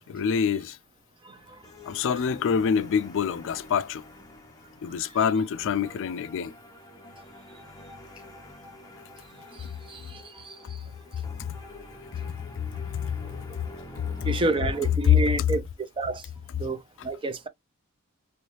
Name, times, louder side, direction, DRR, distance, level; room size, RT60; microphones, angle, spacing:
voice 1, 0.1-0.8 1.9-4.0 4.8-6.5, left 6 dB, 60° left, 0.3 m, -26 dB
sound 1, 1.3-15.0, left 1 dB, 15° left, 0.9 m, -46 dB
voice 2, 9.9-10.5 14.2-15.6 16.0-16.2 16.6-17.5, right 2 dB, 25° right, 0.5 m, -29 dB
3.1 x 3.1 x 2.9 m
head